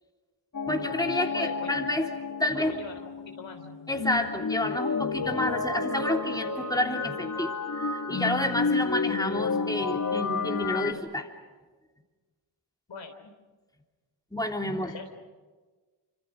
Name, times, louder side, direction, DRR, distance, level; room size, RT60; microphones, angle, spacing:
sound 1, 0.5-10.9, left 4 dB, 40° left, 2.2 m, -31 dB
voice 1, 0.7-2.1 2.4-2.8 3.9-11.3 14.3-14.9, left 1 dB, 10° left, 2 dB, 3.4 m, -29 dB
voice 2, 1.2-1.7 2.5-3.6 12.9-13.3 14.8-15.1, left 4 dB, 75° left, 5 dB, 3.5 m, -41 dB
26.0 x 26.0 x 6.5 m, 1.3 s
cardioid pair, 55°, 45 cm